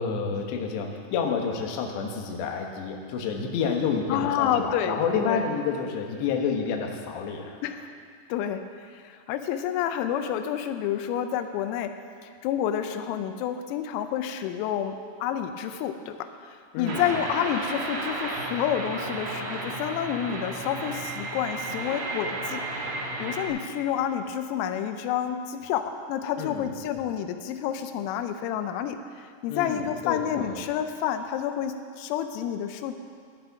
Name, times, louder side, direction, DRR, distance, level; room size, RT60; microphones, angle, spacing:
voice 1, 0.0-7.6 16.7-17.2 26.4-26.7 29.5-30.6, left 6 dB, 70° left, 2 dB, 3.1 m, -29 dB
voice 2, 4.1-5.5 7.6-7.9 8.3-12.0 12.2-16.3 16.8-22.6 23.2-33.0, left 9 dB, 90° left, 8 dB, 3.4 m, -29 dB
sound 1, 16.9-23.5, right 2 dB, 60° right, 3.5 m, -33 dB
17.5 x 11.0 x 4.7 m, 2.1 s
omnidirectional pair, 5.9 m